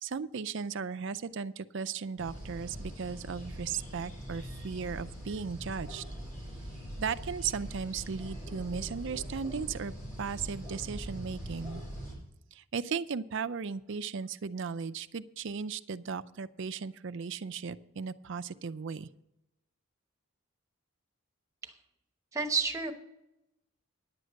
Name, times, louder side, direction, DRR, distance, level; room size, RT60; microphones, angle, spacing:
voice 1, 0.0-6.0 7.0-9.9 10.2-11.8 12.5-19.1, right 6 dB, 55° right, 12 dB, 0.5 m, -36 dB
sound 1, 2.2-12.2, equal, 35° left, 5.5 m, -42 dB
voice 2, 22.3-22.9, right 4 dB, 15° right, 3 dB, 1.0 m, -30 dB
10.5 x 8.0 x 6.3 m, 0.88 s
head